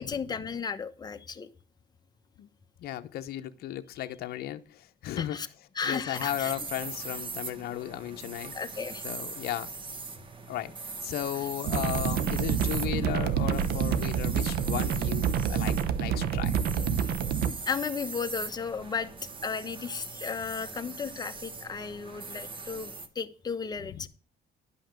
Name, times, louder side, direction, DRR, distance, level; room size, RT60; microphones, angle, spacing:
voice 1, 0.0-1.5 5.2-5.5 5.7-6.5 8.5-9.1 12.3-12.4 17.7-19.1 19.4-24.1, left 6 dB, 25° left, 0.9 m, -34 dB
voice 2, 2.8-5.4 5.9-8.5 9.0-9.7 10.5-10.7 11.0-17.0, left 13 dB, 70° left, 0.7 m, -35 dB
sound 1, 6.1-23.1, right 4 dB, 30° right, 1.2 m, -41 dB
sound 2, 11.6-17.5, right 8 dB, 70° right, 0.9 m, -28 dB
11.0 x 5.8 x 6.5 m
cardioid pair, 110°, 17 cm